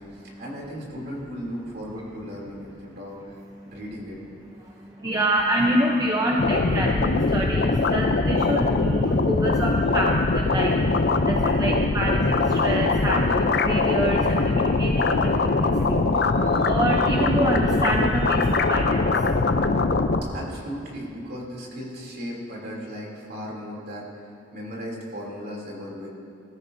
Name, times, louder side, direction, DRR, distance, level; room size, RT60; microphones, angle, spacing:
voice 1, 0.0-3.3 3.6-4.2 20.3-26.1, equal, 50° right, -3 dB, 3.0 m, -36 dB
voice 2, 4.6-19.4, right 1 dB, 20° right, -1 dB, 0.7 m, -27 dB
sound 1, 6.4-20.2, left 3 dB, 55° left, 0.6 m, -22 dB
20.5 x 13.5 x 2.7 m, 2.7 s
head